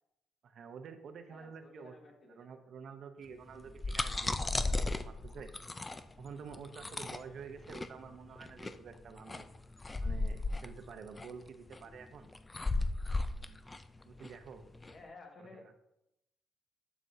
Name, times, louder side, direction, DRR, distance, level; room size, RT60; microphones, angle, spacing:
voice 1, 0.4-1.9 2.3-5.5 6.2-9.5 10.0-12.3 14.0-14.7 15.5-15.7, right 6 dB, 65° right, 8 dB, 0.8 m, -49 dB
voice 2, 1.3-2.6 14.9-15.7, left 3 dB, 45° left, 2 dB, 1.7 m, -54 dB
sound 1, 3.5-14.9, left 2 dB, 20° left, 0.5 m, -36 dB
11.0 x 6.1 x 2.7 m, 0.86 s
cardioid pair, 90°, 0 cm